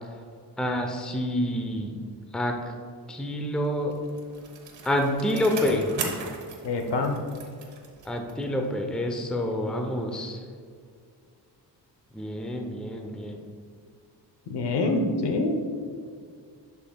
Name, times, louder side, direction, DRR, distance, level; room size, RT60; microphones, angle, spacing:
voice 1, 0.6-1.9 2.3-2.7 3.1-3.9 4.8-5.9 8.0-10.4 12.1-13.4, left 1 dB, ahead, 2 dB, 0.6 m, -28 dB
Bicycle, 3.6-8.5 8.9-9.0, right 5 dB, 90° right, 1.2 m, -39 dB
voice 2, 6.6-7.2 14.5-15.6, left 2 dB, 70° left, 5 dB, 0.9 m, -25 dB
10.5 x 5.6 x 2.3 m, 2.2 s
cardioid pair, 100°, 42 cm